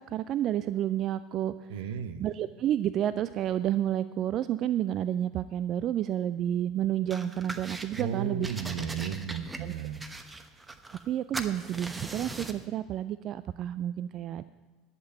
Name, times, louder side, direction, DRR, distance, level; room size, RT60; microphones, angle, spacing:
voice 1, 0.0-8.5 9.6-9.7 11.1-14.4, right 11 dB, 45° right, 14 dB, 0.3 m, -30 dB
voice 2, 1.7-2.2 8.0-10.0, right 7 dB, 70° right, 12 dB, 0.7 m, -34 dB
sound 1, 7.1-8.1 8.4-11.1 11.3-12.7, right 2 dB, 15° right, 1.0 m, -40 dB
11.5 x 7.6 x 8.0 m, 1.3 s
figure-of-eight pair, 70°, 0 cm